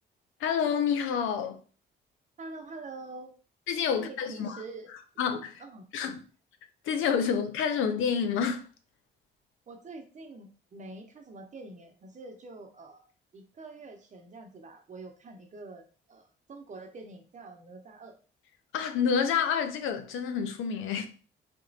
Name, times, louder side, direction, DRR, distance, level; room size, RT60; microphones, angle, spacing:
voice 1, 0.4-1.6 3.7-4.6 5.2-5.6 5.9-6.2 6.8-8.7 18.7-21.1, left 7 dB, 85° left, 0.6 m, -28 dB
voice 2, 2.4-3.3 3.9-4.9 5.6-5.9 9.7-13.0 13.3-18.2, right 3 dB, 40° right, 0.8 m, -45 dB
3.4 x 3.0 x 2.7 m
cardioid pair, 90°, 20 cm